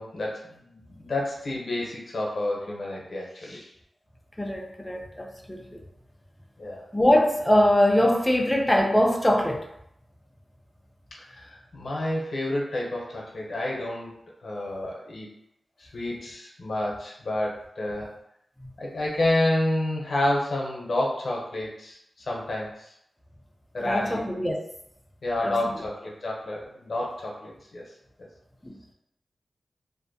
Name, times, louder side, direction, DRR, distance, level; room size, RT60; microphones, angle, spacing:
voice 1, 0.0-3.7 6.6-6.8 11.3-15.3 15.8-18.2 18.8-22.9 23.7-24.2 25.2-27.8, left 1 dB, 65° left, -2 dB, 0.6 m, -29 dB
voice 2, 4.4-5.8 6.9-9.6 18.6-18.7 23.8-24.6 25.4-25.7 28.6-28.8, left 1 dB, 10° left, 1 dB, 0.4 m, -23 dB
2.5 x 2.1 x 2.5 m, 0.77 s
wide cardioid pair, 70°, 0 cm